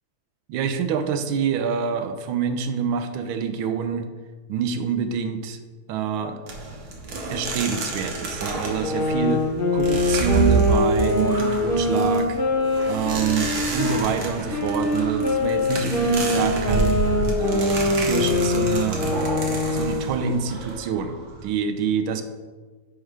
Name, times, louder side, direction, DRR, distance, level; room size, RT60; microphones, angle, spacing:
voice 1, 0.5-4.1 4.5-5.6 5.9-6.4 7.3-12.4 12.9-17.0 17.3-19.0 19.7-22.2, right 6 dB, 75° right, 9 dB, 1.4 m, -26 dB
sound 1, 6.5-21.5, right 3 dB, 55° right, 1.4 m, -29 dB
sound 2, 8.8-14.0 14.5-20.1, left 2 dB, 45° left, 0.7 m, -23 dB
9.7 x 3.7 x 4.7 m, 1.4 s
omnidirectional pair, 2.3 m